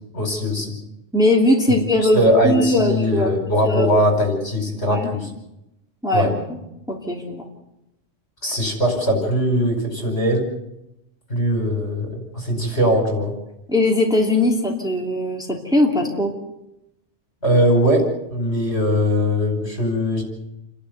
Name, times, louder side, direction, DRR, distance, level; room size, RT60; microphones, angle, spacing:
voice 1, 0.1-0.8 2.0-5.3 6.1-6.4 8.4-10.5 11.3-13.3 17.4-20.2, equal, 60° left, 2 dB, 5.4 m, -20 dB
voice 2, 1.1-3.3 3.7-3.9 4.9-5.1 6.0-6.6 6.9-7.4 13.7-16.3, left 1 dB, 5° right, 0 dB, 2.8 m, -20 dB
29.0 x 11.5 x 9.4 m, 0.88 s
omnidirectional pair, 1.3 m